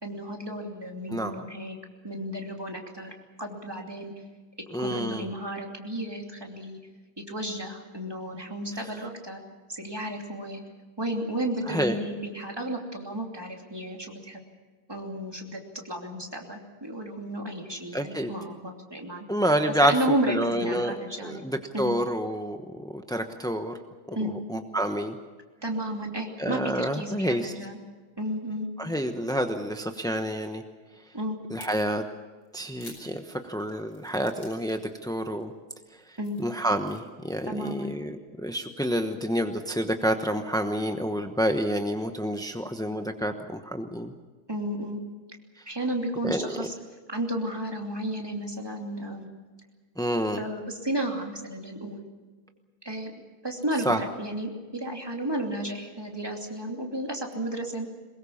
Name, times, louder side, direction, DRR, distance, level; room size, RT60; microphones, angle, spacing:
voice 1, 0.0-1.8 2.0-3.1 3.4-4.1 4.8-6.8 7.2-9.4 9.7-10.6 11.0-14.4 14.9-19.3 19.9-21.4 21.7-21.9 24.1-24.3 25.6-27.8 28.2-28.7 31.1-31.4 36.2-36.4 37.5-37.9 44.5-45.0 45.7-46.7 47.1-49.3 50.3-52.0 52.8-53.1 53.4-57.9, right 1 dB, 10° right, 1 dB, 2.7 m, -33 dB
voice 2, 4.7-5.3 11.7-11.9 17.9-18.3 19.3-20.0 20.3-23.7 24.1-24.2 24.5-25.2 26.4-27.5 28.8-30.6 31.5-32.0 32.5-35.5 36.4-44.1 46.2-46.7 50.0-50.4 53.9-54.0, equal, 5° left, 6 dB, 0.3 m, -28 dB
sound 1, 31.6-31.7 32.4-34.9 35.2-35.4 35.9-37.0, left 2 dB, 60° left, 6.3 m, -50 dB
23.0 x 21.0 x 7.2 m, 1.4 s
omnidirectional pair, 2.1 m